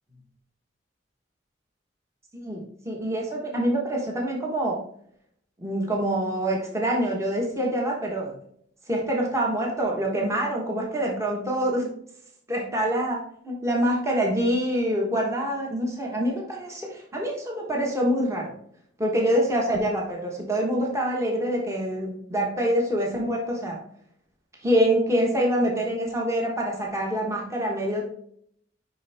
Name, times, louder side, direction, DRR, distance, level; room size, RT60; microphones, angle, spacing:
voice 1, 2.3-4.8 5.6-8.3 8.9-11.9 12.5-18.5 19.0-23.8 24.6-28.0, equal, 15° right, -2 dB, 1.2 m, -25 dB
6.3 x 5.3 x 3.4 m, 0.67 s
head